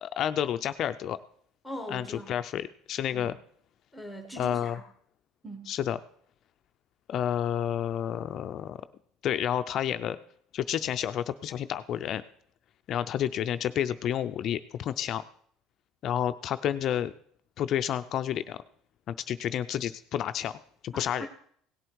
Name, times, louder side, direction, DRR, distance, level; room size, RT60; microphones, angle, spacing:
voice 1, 0.0-1.2 1.9-3.4 4.4-4.8 5.7-6.0 7.1-8.8 9.2-10.2 10.5-12.2 12.9-15.2 16.0-17.1 17.6-18.6 19.1-21.3, left 10 dB, 45° left, 10 dB, 0.4 m, -30 dB
voice 2, 1.6-2.4 3.1-3.3 3.9-4.8 5.4-5.7 20.9-21.3, equal, ahead, 4 dB, 1.2 m, -41 dB
17.0 x 7.9 x 4.6 m, 0.62 s
cardioid pair, 140°, 0 cm